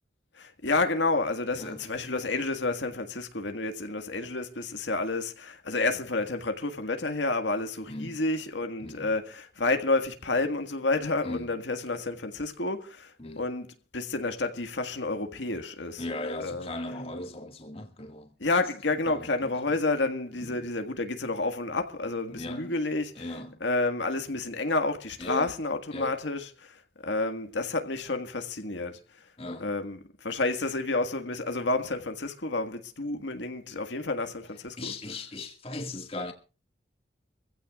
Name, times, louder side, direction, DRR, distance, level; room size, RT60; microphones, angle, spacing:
voice 1, 0.4-13.7 13.9-16.1 16.4-17.0 18.4-29.0 29.6-34.9, left 2 dB, 80° left, 1.8 m, -30 dB
voice 2, 7.9-8.2 8.8-9.1 11.2-11.5 13.2-13.4 16.0-18.3 19.1-19.8 20.4-20.7 22.3-22.8 23.2-23.6 25.2-25.5 25.9-26.2 29.4-29.7 34.8-36.3, left 2 dB, 30° left, 2.0 m, -38 dB
24.5 x 15.5 x 2.4 m
head